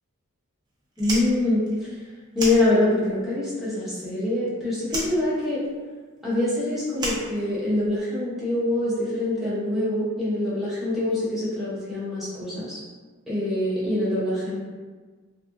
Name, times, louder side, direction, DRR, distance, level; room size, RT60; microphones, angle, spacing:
Fire, 0.9-3.2 3.5-4.5 4.8-8.0, right 1 dB, 20° right, 0.4 m, -34 dB
voice 1, 1.0-1.7 2.3-5.6 6.2-12.8 13.3-14.6, left 1 dB, ahead, -11 dB, 0.8 m, -25 dB
2.7 x 2.5 x 2.5 m, 1.4 s
head